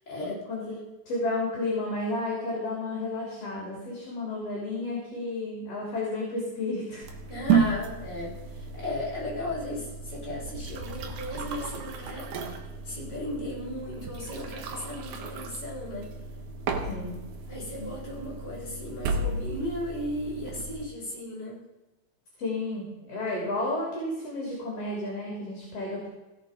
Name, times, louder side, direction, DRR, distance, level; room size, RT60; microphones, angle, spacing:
voice 1, 0.1-0.4 7.3-8.3 8.7-12.3 12.8-16.1 17.5-21.6, left 1 dB, 35° left, -6 dB, 4.8 m, -35 dB
voice 2, 1.1-7.0 16.9-17.1 22.4-26.1, left 2 dB, 50° left, -3 dB, 4.1 m, -32 dB
sound 1, 7.0-20.8, right 5 dB, 70° right, 2.5 m, -33 dB
16.0 x 7.0 x 5.1 m, 1.1 s
omnidirectional pair, 3.6 m